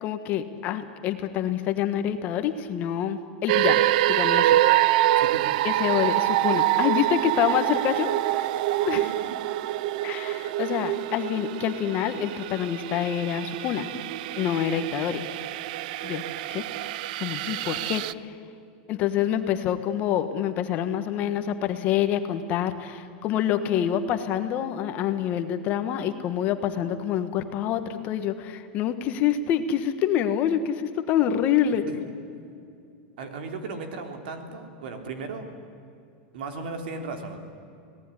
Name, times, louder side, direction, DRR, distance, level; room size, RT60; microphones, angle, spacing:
voice 1, 0.0-4.6 5.6-8.5 8.8-9.1 10.0-13.9 14.4-15.3 16.0-16.2 16.5-16.6 17.2-18.3 18.9-31.9, left 10 dB, 30° left, 8 dB, 1.4 m, -26 dB
sound 1, 3.5-18.1, right 14 dB, 55° right, 0.5 m, -25 dB
voice 2, 5.2-5.5 31.7-31.9 33.2-35.5 36.3-37.4, right 4 dB, 70° right, 5 dB, 3.6 m, -36 dB
26.0 x 18.0 x 9.9 m, 2.5 s
supercardioid pair, 170°, 5 cm